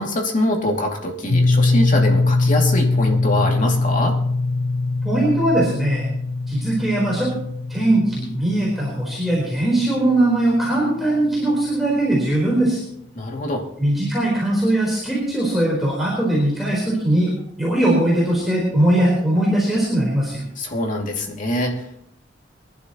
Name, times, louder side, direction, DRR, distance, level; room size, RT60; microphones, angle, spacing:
voice 1, 0.0-4.2 13.1-13.6 20.6-22.0, left 1 dB, 45° left, 1 dB, 2.5 m, -24 dB
sound 1, 1.3-11.2, left 3 dB, 60° left, 0.4 m, -22 dB
voice 2, 5.0-6.1 6.5-7.3 7.7-12.8 13.8-17.3 17.6-20.4, right 1 dB, ahead, -6 dB, 4.1 m, -20 dB
23.5 x 11.5 x 3.0 m, 0.72 s
head